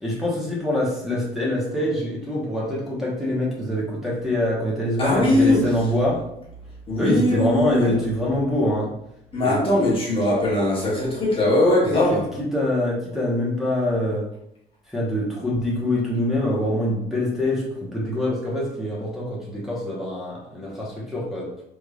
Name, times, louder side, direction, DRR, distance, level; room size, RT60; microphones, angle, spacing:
voice 1, 0.0-6.2 7.0-8.9 9.4-9.6 12.1-14.2 14.9-21.5, left 1 dB, ahead, 1.1 m, -25 dB
voice 2, 5.0-5.7 6.9-8.0 9.3-12.3, left 1 dB, 35° left, 1.2 m, -20 dB
3.6 x 3.2 x 2.4 m
cardioid pair, 110°, 17 cm